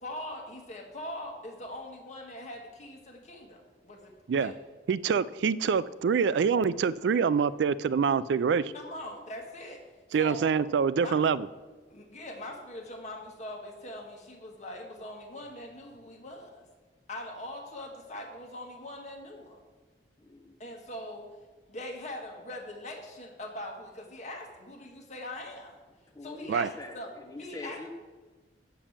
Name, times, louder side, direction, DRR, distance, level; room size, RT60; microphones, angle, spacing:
voice 1, 0.0-4.6 8.7-9.8 10.1-10.5 11.0-11.2 11.9-16.6 17.1-19.6 20.6-21.3 21.7-25.8 26.2-27.1 27.4-27.8, left 1 dB, 40° left, 1 dB, 1.7 m, -42 dB
voice 2, 4.9-8.7 10.1-11.5 26.5-26.7, right 6 dB, 75° right, 18 dB, 0.3 m, -25 dB
voice 3, 20.2-20.6 26.1-27.9, left 2 dB, 20° left, 4 dB, 1.0 m, -44 dB
7.3 x 7.0 x 7.2 m, 1.3 s
head